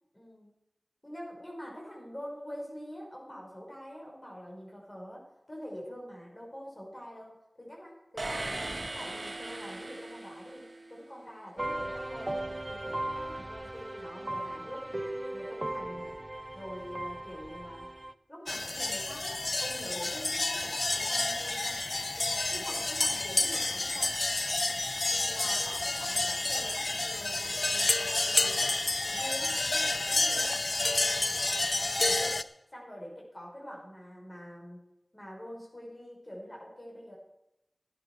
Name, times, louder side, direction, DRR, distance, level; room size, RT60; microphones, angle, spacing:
voice 1, 0.1-0.5 1.0-8.6 8.9-12.4 12.7-16.2 16.5-17.9 18.3-21.8 22.5-24.2 25.2-28.7 29.0-30.6 32.0-34.8 35.1-37.2, equal, 30° left, -2 dB, 5.9 m, -45 dB
sound 1, 8.2-11.0, right 2 dB, 50° right, 2.3 m, -38 dB
sound 2, 11.6-18.1, right 1 dB, 30° right, 0.7 m, -37 dB
sound 3, 18.5-32.4, left 2 dB, 50° left, 0.6 m, -30 dB
13.5 x 9.9 x 6.3 m, 0.87 s
wide cardioid pair, 60°, 0 cm